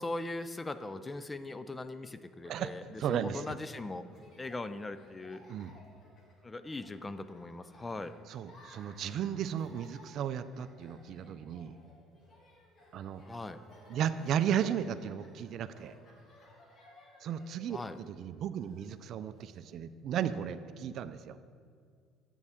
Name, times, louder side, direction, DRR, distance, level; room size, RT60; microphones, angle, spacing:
voice 1, 0.0-4.0 4.4-5.4 6.4-8.1 13.3-13.6 17.7-18.0, left 2 dB, 20° left, 12 dB, 0.4 m, -40 dB
Laughter, 2.8-19.6, left 1 dB, 50° left, 1.7 m, -59 dB
voice 2, 3.0-3.6 5.5-5.8 8.3-11.8 12.9-13.2 13.9-15.9 17.2-21.4, right 9 dB, 60° right, 13 dB, 0.3 m, -35 dB
7.9 x 7.1 x 3.6 m, 2.1 s
supercardioid pair, 85°, 0 cm